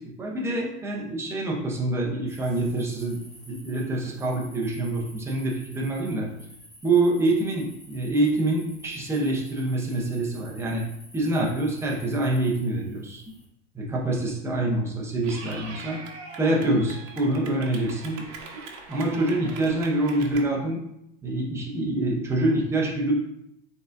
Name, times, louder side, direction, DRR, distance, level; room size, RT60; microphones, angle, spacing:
voice 1, 0.2-3.2 3.5-6.3 6.8-10.8 11.1-13.2 13.7-16.0 16.4-18.2 18.9-20.8 21.2-23.1, right 2 dB, 5° right, -2 dB, 0.7 m, -26 dB
sound 1, 2.3-13.5, equal, 15° left, 1.6 m, -51 dB
Clapping / Cheering, 15.2-20.4, right 4 dB, 85° right, 1.0 m, -41 dB
4.6 x 3.8 x 2.5 m, 0.80 s
supercardioid pair, 145°, 37 cm